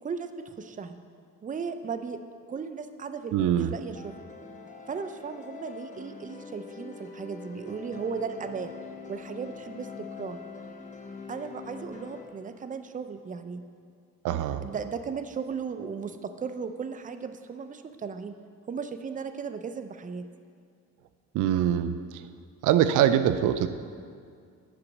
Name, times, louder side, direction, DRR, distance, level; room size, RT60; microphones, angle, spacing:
voice 1, 0.0-1.0 1.4-2.2 2.5-4.2 4.9-8.8 9.1-10.4 11.3-13.6 14.6-18.3 18.7-20.3, right 5 dB, 25° right, 9 dB, 0.5 m, -36 dB
voice 2, 3.3-3.7 14.2-14.6 21.3-21.9 22.6-23.7, right 10 dB, 85° right, 11 dB, 0.5 m, -23 dB
sound 1, 3.9-12.2, left 5 dB, 25° left, 1.0 m, -44 dB
10.0 x 5.2 x 5.9 m, 2.2 s
cardioid pair, 90°, 30 cm